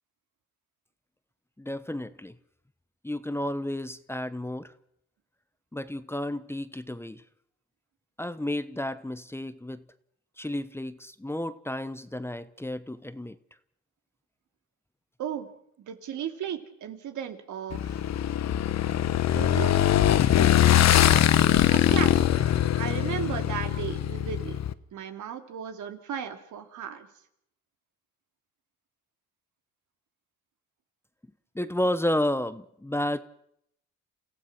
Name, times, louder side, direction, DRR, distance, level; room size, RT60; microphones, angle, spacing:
voice 1, 1.6-2.3 3.0-4.7 5.7-7.2 8.2-9.8 10.4-13.4 31.5-33.2, left 1 dB, 10° left, 14 dB, 1.0 m, -31 dB
voice 2, 15.9-18.0 19.3-19.7 21.7-24.6 24.9-27.1, right 9 dB, 75° right, 7 dB, 2.8 m, -35 dB
Motorcycle / Engine, 17.7-24.7, left 11 dB, 60° left, 1.1 m, -22 dB
29.5 x 15.5 x 6.1 m, 0.74 s
cardioid pair, 90°, 30 cm